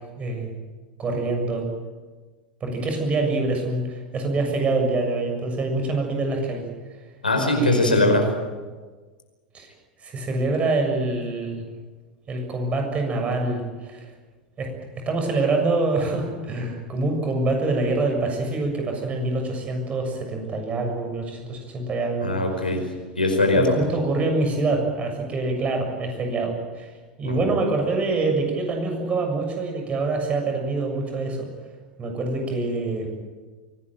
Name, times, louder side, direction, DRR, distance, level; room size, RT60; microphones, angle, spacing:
voice 1, 0.2-0.5 1.0-1.7 2.6-6.6 7.5-8.1 9.5-9.7 10.0-11.6 12.3-14.0 14.6-14.7 15.0-22.3 23.5-26.9 27.2-31.5 32.0-33.1, right 2 dB, 25° right, 3 dB, 6.9 m, -25 dB
voice 2, 7.2-8.2 22.2-22.8 23.2-23.7 27.2-27.5, left 2 dB, 85° left, 4 dB, 5.1 m, -21 dB
24.0 x 18.5 x 9.0 m, 1.4 s
figure-of-eight pair, 85°, 5 cm